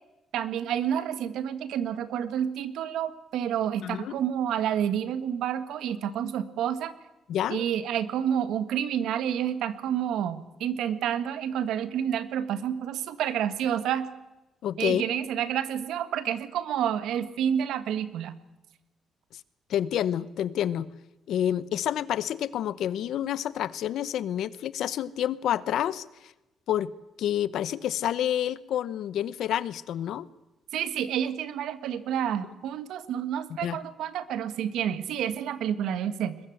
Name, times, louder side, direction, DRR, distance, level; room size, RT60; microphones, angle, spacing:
voice 1, 0.3-6.9 7.5-14.1 14.8-18.3 30.7-36.4, right 9 dB, 85° right, 12 dB, 1.7 m, -29 dB
voice 2, 3.8-4.1 7.3-7.6 14.6-15.0 19.7-20.9 21.3-26.0 26.7-26.9 27.2-30.3 33.6-33.8, left 10 dB, 70° left, 17 dB, 0.9 m, -28 dB
22.0 x 21.5 x 8.0 m, 1.0 s
cardioid pair, 175°, 0 cm